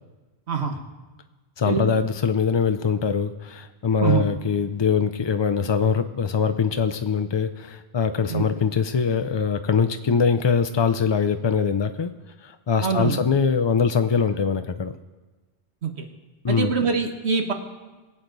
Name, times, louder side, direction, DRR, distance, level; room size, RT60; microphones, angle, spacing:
voice 1, 0.5-0.8 1.7-1.9 4.0-4.2 8.3-8.5 12.8-13.2 15.8-16.0 16.5-17.5, right 6 dB, 80° right, 5 dB, 1.5 m, -24 dB
voice 2, 1.6-12.1 12.4-14.9 16.4-16.7, left 6 dB, 50° left, 9 dB, 0.3 m, -23 dB
22.0 x 8.5 x 4.0 m, 1.2 s
omnidirectional pair, 1.1 m